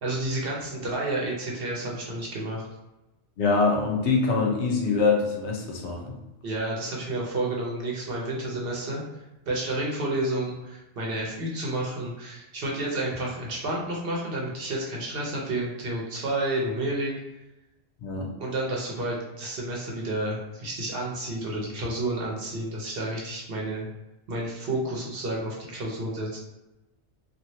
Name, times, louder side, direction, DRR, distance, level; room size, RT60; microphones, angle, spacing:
voice 1, 0.0-2.6 6.4-9.0 9.5-17.1 18.4-23.9 24.3-26.4, right 1 dB, 60° right, -3 dB, 0.9 m, -30 dB
voice 2, 3.4-6.2 18.0-18.3, left 4 dB, 75° left, -1 dB, 1.0 m, -24 dB
3.0 x 2.5 x 2.7 m, 0.99 s
omnidirectional pair, 1.2 m